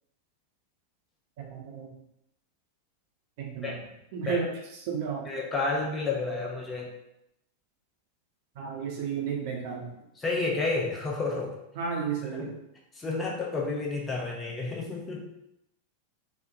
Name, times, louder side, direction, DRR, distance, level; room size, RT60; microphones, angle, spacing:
voice 1, 1.4-1.9 3.4-3.7 4.1-5.3 8.5-9.9 11.7-12.5, right 6 dB, 50° right, 0 dB, 0.6 m, -33 dB
voice 2, 5.3-6.9 10.2-11.6 12.3-12.5 13.0-15.2, left 3 dB, 15° left, -2 dB, 0.7 m, -30 dB
3.1 x 2.0 x 2.6 m, 0.83 s
figure-of-eight pair, 90°, 0 cm